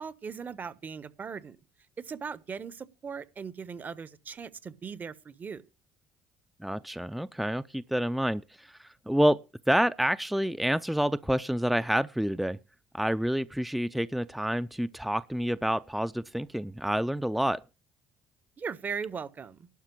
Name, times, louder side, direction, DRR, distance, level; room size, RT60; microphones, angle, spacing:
voice 1, 0.0-1.6 2.0-5.6 18.6-19.7, right 6 dB, 40° right, 1.1 m, -38 dB
voice 2, 6.6-9.4 9.7-12.6 12.9-17.6, equal, ahead, 0.5 m, -28 dB
12.0 x 5.9 x 8.3 m
hypercardioid pair, 60°, 5 cm